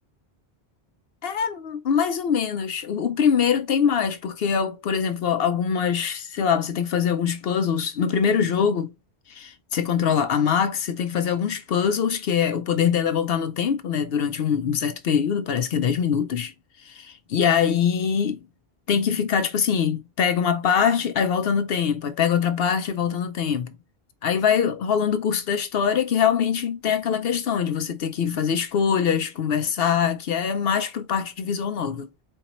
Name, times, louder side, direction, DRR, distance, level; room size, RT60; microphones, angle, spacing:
voice 1, 1.2-8.9 9.3-18.4 18.9-23.7 24.2-32.1, left 7 dB, 70° left, 0.8 m, -23 dB
4.4 x 3.9 x 3.0 m
omnidirectional pair, 1.1 m